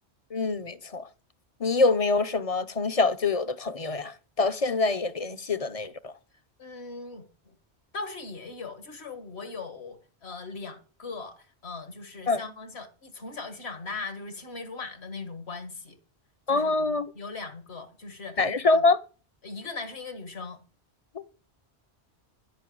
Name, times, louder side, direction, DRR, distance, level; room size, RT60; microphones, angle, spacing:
voice 1, 0.3-1.1 1.6-6.1 12.3-12.4 16.5-17.1 18.4-19.0 21.1-21.3, left 3 dB, 35° left, 0.8 m, -25 dB
voice 2, 6.6-7.5 7.9-16.0 16.5-18.8 19.4-20.6, left 4 dB, 70° left, 2.0 m, -39 dB
13.5 x 6.0 x 8.6 m
omnidirectional pair, 1.1 m